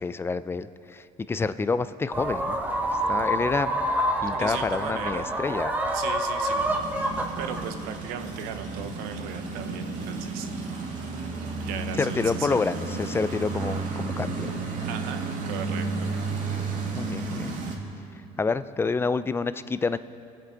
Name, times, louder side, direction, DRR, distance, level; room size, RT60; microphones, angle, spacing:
voice 1, 0.0-2.6 3.1-3.8 4.2-5.8 12.0-14.5 17.0-17.6 18.4-20.0, left 4 dB, 15° left, 14 dB, 0.4 m, -28 dB
sound 1, 2.1-7.7, right 1 dB, 10° right, 1.2 m, -27 dB
voice 2, 4.3-5.3 5.9-6.8 7.4-10.5 11.6-12.6 14.9-15.9, right 8 dB, 85° right, 8 dB, 0.9 m, -37 dB
sound 2, 6.6-17.8, right 3 dB, 65° right, 1.8 m, -32 dB
21.5 x 8.2 x 3.9 m, 2.5 s
cardioid pair, 120°, 15 cm